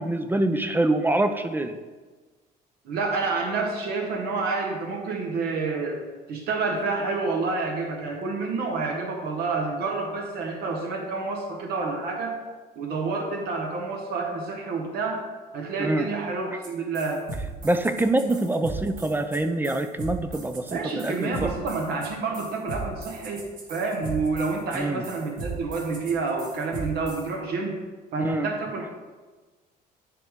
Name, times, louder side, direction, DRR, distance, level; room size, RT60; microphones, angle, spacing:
voice 1, 0.0-1.8 15.8-16.1 17.6-20.8 21.0-21.1 21.4-21.5 24.7-25.0 28.2-28.5, right 2 dB, 10° right, 8 dB, 0.4 m, -25 dB
voice 2, 2.8-12.4 12.8-15.3 15.5-17.3 20.7-27.8 28.1-29.0, right 3 dB, 70° right, 1 dB, 1.1 m, -29 dB
sound 1, 16.6-16.7 16.9-27.3, right 3 dB, 50° right, 1.4 m, -37 dB
10.0 x 3.5 x 3.7 m, 1.3 s
cardioid pair, 110°, 17 cm